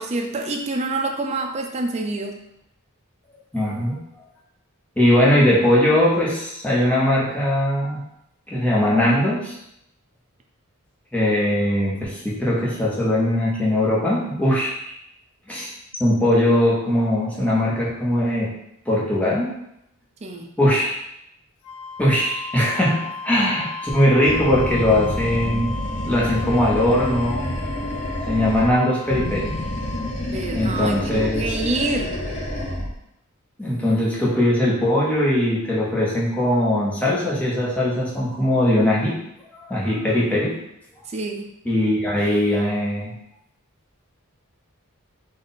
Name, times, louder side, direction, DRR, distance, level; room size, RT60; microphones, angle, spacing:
voice 1, 0.0-2.4 20.2-20.5 30.3-32.1 41.1-41.5, right 2 dB, 30° right, 2 dB, 0.5 m, -27 dB
voice 2, 3.5-4.0 5.0-8.0 8.5-9.6 11.1-14.7 15.5-15.7 16.0-18.5 18.9-19.5 20.6-21.0 22.0-25.8 26.1-27.4 28.3-29.5 30.5-31.5 33.6-39.2 39.6-40.5 41.6-43.1, left 1 dB, 5° left, -6 dB, 1.0 m, -20 dB
Wind instrument woodwind instrument, 21.6-30.2, left 4 dB, 85° left, 0.5 m, -35 dB
Animal, 24.2-28.7 29.0-33.0, left 1 dB, 35° left, 0.8 m, -28 dB
3.8 x 2.5 x 4.0 m, 0.80 s
head